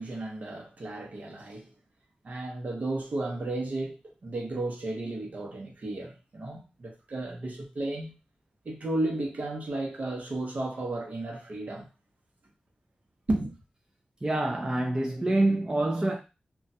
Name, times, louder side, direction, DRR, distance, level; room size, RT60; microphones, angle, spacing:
voice 1, 0.0-1.7 2.2-8.1 8.6-11.9 13.3-13.6, right 2 dB, 60° right, 0.9 m, -33 dB
voice 2, 14.2-16.2, right 2 dB, 20° right, 0.5 m, -26 dB
2.4 x 2.3 x 4.0 m
wide cardioid pair, 110°, 3 cm